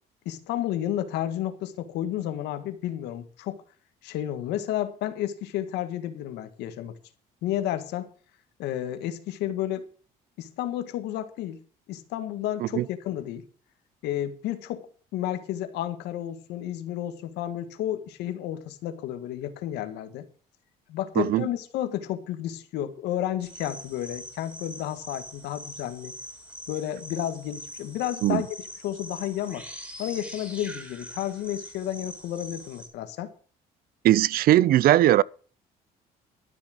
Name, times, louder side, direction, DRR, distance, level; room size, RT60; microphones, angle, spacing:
voice 1, 0.2-3.6 4.0-6.9 7.4-8.1 8.6-9.8 10.4-11.6 11.9-13.4 14.0-20.2 20.9-26.1 26.7-28.5 28.8-29.7 30.0-33.3, left 12 dB, 85° left, 1.7 m, -31 dB
voice 2, 21.2-21.5 28.2-28.4 34.0-35.2, right 14 dB, 60° right, 0.5 m, -19 dB
sound 1, 23.4-32.9, equal, 10° right, 4.5 m, -43 dB
13.0 x 7.4 x 6.4 m
cardioid pair, 110°, 17 cm